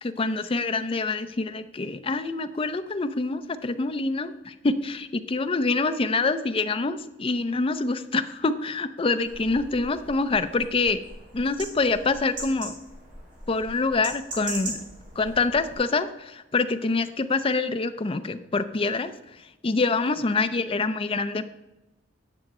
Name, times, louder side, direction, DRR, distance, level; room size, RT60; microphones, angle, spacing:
voice 1, 0.0-11.0 11.3-12.7 13.5-14.8 15.2-19.1 19.6-21.5, left 3 dB, 30° left, 10 dB, 0.5 m, -26 dB
sound 1, 9.2-15.8, right 1 dB, 45° right, 2.9 m, -40 dB
9.8 x 6.4 x 4.2 m, 1.0 s
head